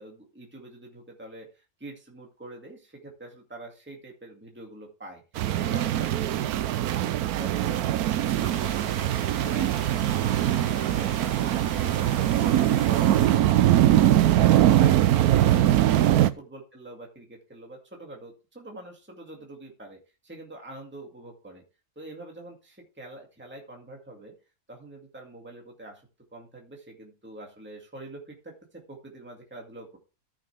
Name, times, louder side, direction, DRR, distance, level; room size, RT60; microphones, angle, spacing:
voice 1, 0.0-5.2 5.6-6.6 6.9-11.1 15.4-21.6 22.0-24.3 24.7-30.0, right 1 dB, 5° right, 0 dB, 2.1 m, -45 dB
sound 1, 5.4-16.3, right 12 dB, 75° right, 1.1 m, -22 dB
sound 2, 8.3-13.3, equal, 40° left, 7.4 m, -43 dB
14.0 x 6.5 x 3.4 m, 0.31 s
omnidirectional pair, 1.6 m